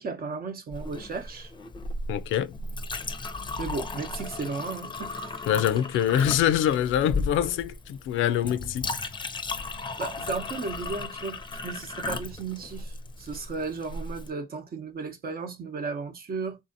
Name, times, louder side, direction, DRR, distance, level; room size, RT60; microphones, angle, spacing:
voice 1, 0.0-1.5 3.3-5.4 10.0-16.6, right 4 dB, 50° right, 0.8 m, -35 dB
Chink clink, 0.7-14.3, left 3 dB, 25° left, 0.5 m, -35 dB
voice 2, 2.1-2.5 5.5-8.9, left 10 dB, 80° left, 0.4 m, -25 dB
3.6 x 2.7 x 2.5 m
cardioid pair, 90°, 20 cm